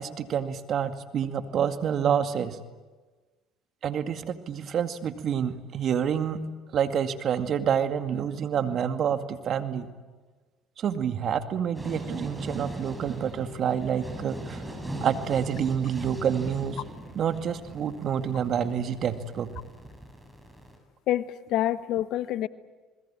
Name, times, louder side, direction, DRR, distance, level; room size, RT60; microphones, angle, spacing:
voice 1, 0.0-2.6 3.8-6.5 6.7-9.9 10.8-14.7 15.0-16.8 17.2-19.5, right 8 dB, 55° right, 8 dB, 2.1 m, -28 dB
sound 1, 11.7-20.8, right 1 dB, 10° right, 7.1 m, -40 dB
voice 2, 21.1-22.5, left 13 dB, 65° left, 15 dB, 1.1 m, -27 dB
28.5 x 21.0 x 8.9 m, 1.3 s
hypercardioid pair, 70°, 0 cm